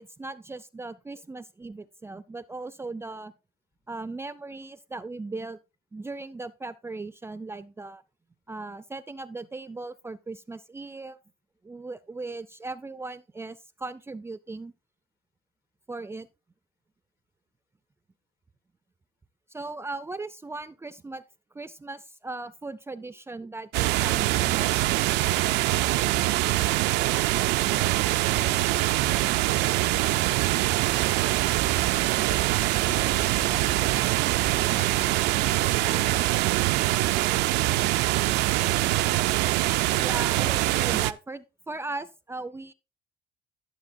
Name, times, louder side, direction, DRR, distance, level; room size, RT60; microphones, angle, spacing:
voice 1, 0.0-3.3 3.9-5.6 5.9-8.0 8.5-11.2 11.6-14.7 15.9-16.3 19.5-21.2 21.5-25.2 40.0-42.7, right 3 dB, 15° right, 0.4 m, -38 dB
sound 1, 23.7-41.1, right 17 dB, 85° right, 0.4 m, -24 dB
voice 2, 27.2-29.8 32.4-33.2 34.5-36.5 36.9-37.5, left 6 dB, 65° left, 2.0 m, -48 dB
sound 2, 29.5-38.4, left 2 dB, 20° left, 0.7 m, -45 dB
13.0 x 7.0 x 2.6 m
cardioid pair, 110°, 17 cm